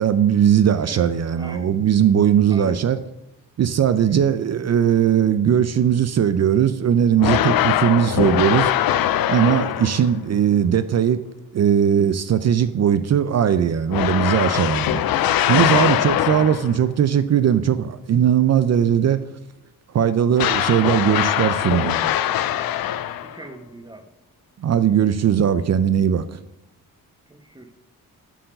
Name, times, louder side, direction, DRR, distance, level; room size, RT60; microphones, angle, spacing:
voice 1, 0.0-3.0 3.6-8.7 9.3-11.2 11.5-19.2 19.9-22.0 24.6-26.4, right 9 dB, 50° right, 13 dB, 0.5 m, -19 dB
voice 2, 1.4-1.7 2.5-2.8 4.0-4.1 15.7-15.9 23.2-24.1 27.3-27.7, right 2 dB, 10° right, 7 dB, 1.0 m, -39 dB
sound 1, 7.2-10.2 13.9-16.8 20.4-23.5, left 11 dB, 80° left, 0.5 m, -22 dB
7.4 x 4.5 x 6.7 m, 0.88 s
cardioid pair, 85°, 35 cm